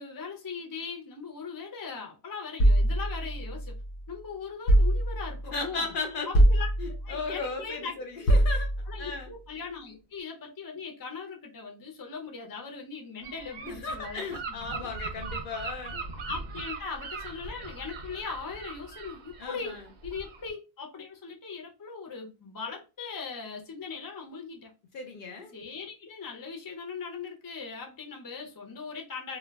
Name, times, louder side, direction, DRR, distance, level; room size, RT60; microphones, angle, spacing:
voice 1, 0.0-3.7 4.1-5.9 6.3-6.7 7.0-8.3 8.9-14.9 16.2-24.7 25.5-29.4, left 5 dB, 25° left, 0.5 m, -39 dB
sound 1, 2.6-4.0 4.7-5.5 6.3-7.2 8.3-9.1, right 1 dB, 90° left, 0.9 m, -23 dB
voice 2, 5.5-6.4 6.8-8.7 9.0-9.3 13.6-16.0 19.4-19.9 24.9-25.5, left 4 dB, 60° left, 0.7 m, -36 dB
Gull seagull / Wind, 13.2-20.5, right 4 dB, 55° right, 0.6 m, -40 dB
2.2 x 2.2 x 3.3 m
omnidirectional pair, 1.0 m